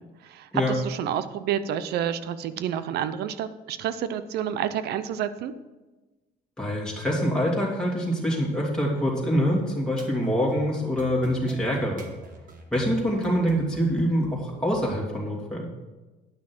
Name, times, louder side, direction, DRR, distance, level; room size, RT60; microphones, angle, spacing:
voice 1, 0.0-5.5, right 9 dB, 75° right, 13 dB, 0.7 m, -29 dB
voice 2, 6.6-12.1 12.7-15.7, equal, 5° left, -4 dB, 2.8 m, -25 dB
sound 1, 9.9-14.9, right 4 dB, 50° right, 1.6 m, -45 dB
10.0 x 6.0 x 6.1 m, 1.2 s
cardioid pair, 110°, 17 cm